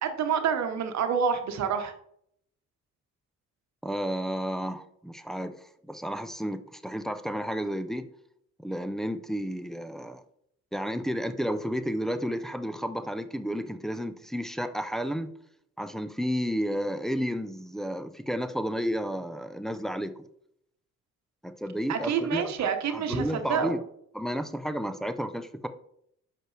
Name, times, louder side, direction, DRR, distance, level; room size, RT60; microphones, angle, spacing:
voice 1, 0.0-1.9 21.9-23.8, right 7 dB, 65° right, 7 dB, 1.0 m, -28 dB
voice 2, 3.8-5.5 5.9-8.0 8.6-10.2 10.7-15.3 15.8-20.1 21.4-23.8 24.1-25.7, equal, ahead, 8 dB, 0.5 m, -32 dB
6.1 x 5.2 x 3.2 m, 0.70 s
cardioid pair, 90°, 30 cm